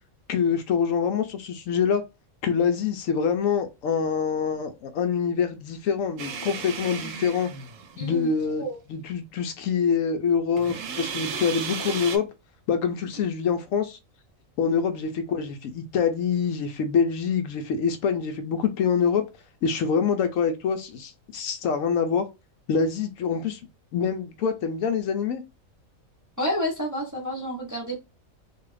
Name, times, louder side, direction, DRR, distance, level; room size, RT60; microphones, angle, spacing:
voice 1, 0.3-2.0 2.4-7.5 8.0-8.6 8.9-12.3 12.7-14.0 14.6-19.2 19.6-22.3 22.7-23.6 23.9-25.4, left 6 dB, 75° left, 0.9 m, -25 dB
sound 1, 6.2-8.2 10.6-12.2, right 6 dB, 75° right, 0.9 m, -34 dB
voice 2, 8.0-8.3 8.6-8.8 26.4-28.0, equal, 20° right, 0.6 m, -29 dB
2.6 x 2.4 x 3.1 m
omnidirectional pair, 1.5 m